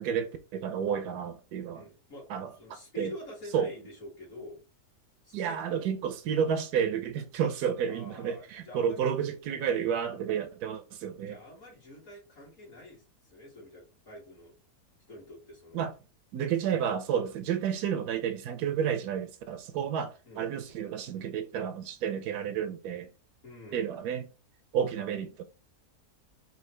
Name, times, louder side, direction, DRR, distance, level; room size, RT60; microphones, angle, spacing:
voice 1, 0.0-1.8 2.3-3.1 3.5-3.7 5.3-11.4 15.7-15.9 16.3-23.1 23.7-24.3 24.7-25.4, right 8 dB, 75° right, 1.1 m, -31 dB
voice 2, 1.7-4.6 5.2-6.0 7.9-9.1 11.3-14.5 15.1-15.9 20.3-20.5 23.4-23.9 24.9-25.1, left 1 dB, 55° left, 2.5 m, -47 dB
4.8 x 2.8 x 3.1 m
omnidirectional pair, 1.7 m